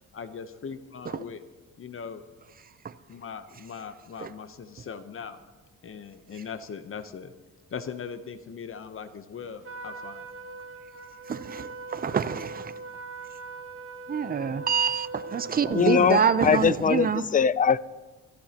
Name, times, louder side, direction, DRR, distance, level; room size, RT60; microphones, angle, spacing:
voice 1, 0.1-1.4 1.8-2.2 3.1-5.4 5.8-7.3 7.7-10.3, left 6 dB, 45° left, 0.9 m, -39 dB
Trumpet, 9.6-16.5, right 3 dB, 45° right, 1.5 m, -41 dB
voice 2, 11.3-12.7 14.1-17.2, right 7 dB, 30° right, 0.6 m, -26 dB
voice 3, 15.7-17.8, left 7 dB, 25° left, 0.4 m, -22 dB
24.0 x 13.5 x 3.0 m
cardioid pair, 90°, 30 cm